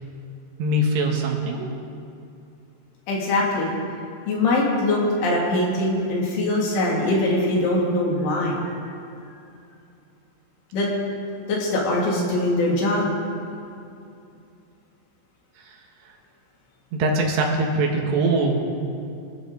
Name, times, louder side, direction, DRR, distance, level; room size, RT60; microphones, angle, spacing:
voice 1, 0.6-1.7 15.6-16.2 16.9-18.6, right 2 dB, 70° right, 1 dB, 3.6 m, -23 dB
voice 2, 3.1-3.7 4.3-8.7 10.7-10.9 11.5-13.1, left 1 dB, 80° left, -3 dB, 5.2 m, -22 dB
26.5 x 12.5 x 4.0 m, 2.6 s
omnidirectional pair, 5.4 m